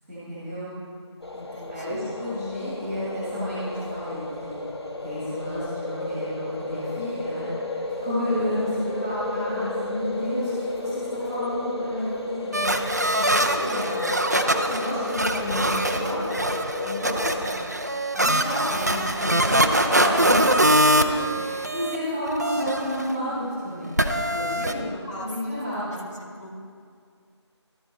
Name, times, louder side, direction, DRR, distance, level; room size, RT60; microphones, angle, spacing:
voice 1, 0.1-0.7 1.7-4.6 5.0-16.3 16.8-17.5 18.1-20.5 21.1-26.0, equal, 5° right, -12 dB, 1.8 m, -31 dB
sound 1, 1.2-17.5, left 2 dB, 60° left, 0.9 m, -32 dB
voice 2, 1.3-2.0 21.2-21.6 24.6-25.3 25.9-26.5, left 1 dB, 80° left, -2 dB, 1.7 m, -41 dB
sound 2, 12.5-22.0 22.3-23.1 24.0-24.7, right 1 dB, 35° right, 0.3 m, -23 dB
13.0 x 4.5 x 4.2 m, 2.2 s
figure-of-eight pair, 165°, 15 cm